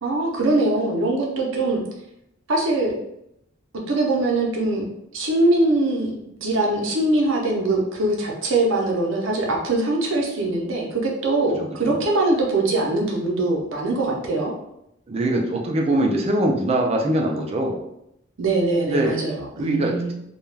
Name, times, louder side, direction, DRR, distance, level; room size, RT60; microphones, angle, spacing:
voice 1, 0.0-1.8 2.5-3.0 3.9-6.1 6.4-14.5 18.4-20.1, right 2 dB, 75° right, -1 dB, 0.6 m, -22 dB
voice 2, 11.6-12.0 15.1-17.8 18.8-19.2 19.6-20.1, right 1 dB, 30° right, 1 dB, 0.4 m, -22 dB
2.3 x 2.2 x 3.2 m, 0.80 s
head